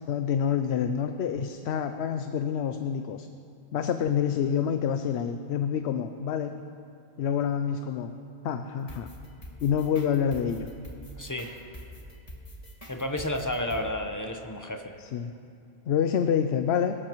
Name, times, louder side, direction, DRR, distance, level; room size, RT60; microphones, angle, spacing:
voice 1, 0.1-3.3 3.7-6.6 7.2-8.1 8.4-9.1 9.6-10.7 15.0-15.3 15.9-17.0, left 8 dB, 80° left, 8 dB, 0.8 m, -27 dB
sound 1, 8.9-13.8, equal, 35° left, 1.9 m, -44 dB
voice 2, 11.2-11.5 12.9-14.9, left 1 dB, 20° left, 4 dB, 0.8 m, -31 dB
22.5 x 13.0 x 3.1 m, 2.5 s
omnidirectional pair, 1.1 m